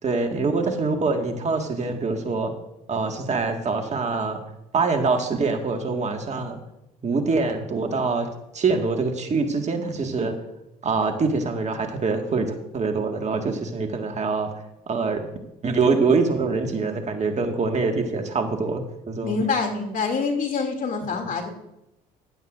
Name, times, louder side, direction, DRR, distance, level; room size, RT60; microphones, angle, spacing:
voice 1, 0.0-2.5 2.9-4.4 4.7-6.6 7.0-8.3 8.5-10.3 10.8-14.5 14.9-15.3 15.6-19.4, right 4 dB, 35° right, 4 dB, 1.8 m, -24 dB
voice 2, 19.2-21.5, left 4 dB, 45° left, 3 dB, 2.7 m, -25 dB
15.0 x 11.5 x 2.6 m, 0.86 s
hypercardioid pair, 65°, 19 cm